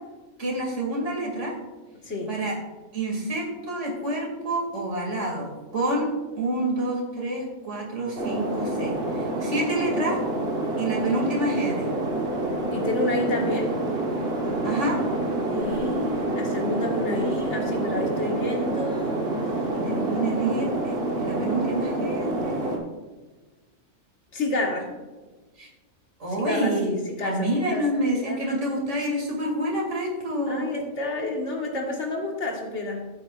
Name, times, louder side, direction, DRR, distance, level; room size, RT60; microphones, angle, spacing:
voice 1, 0.4-1.5 2.3-2.5 2.9-6.1 6.4-10.2 10.8-11.9 14.6-15.0 18.2-18.4 19.7-22.8 25.6-25.7 26.2-26.9 27.2-30.7, right 1 dB, 70° right, -2 dB, 2.7 m, -28 dB
voice 2, 2.0-2.4 12.7-13.8 15.5-19.2 21.3-22.8 24.3-24.9 26.3-27.4 27.7-27.9 28.2-28.6 30.5-33.1, left 2 dB, 70° left, 0 dB, 1.9 m, -30 dB
sound 1, 8.2-22.8, right 2 dB, 55° right, 1.4 m, -27 dB
14.5 x 7.7 x 2.4 m, 1.2 s
omnidirectional pair, 1.3 m